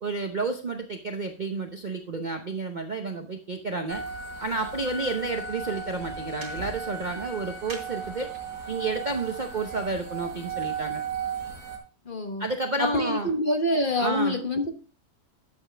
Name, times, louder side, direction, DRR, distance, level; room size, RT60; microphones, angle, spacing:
voice 1, 0.0-4.0 4.4-8.3 8.7-11.0 12.4-13.3 14.0-14.4, right 3 dB, 40° right, 4 dB, 0.7 m, -31 dB
sound 1, 3.9-11.8, right 5 dB, 70° right, 3.5 m, -36 dB
voice 2, 12.1-12.5 12.9-14.7, left 1 dB, 35° left, 5 dB, 1.1 m, -26 dB
11.5 x 7.1 x 3.3 m, 0.37 s
omnidirectional pair, 1.8 m